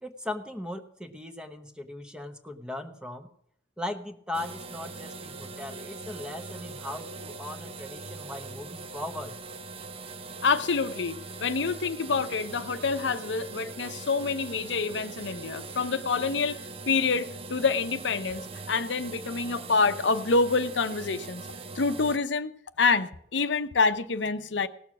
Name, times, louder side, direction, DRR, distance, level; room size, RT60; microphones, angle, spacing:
voice 1, 0.0-3.3 3.8-9.4, left 1 dB, 5° right, 7 dB, 1.0 m, -38 dB
sound 1, 4.3-22.2, right 3 dB, 30° right, 0.6 m, -41 dB
voice 2, 10.4-18.4 18.7-21.4 21.7-22.5 22.8-24.7, left 4 dB, 80° left, 10 dB, 0.7 m, -27 dB
17.0 x 6.9 x 6.1 m, 0.69 s
head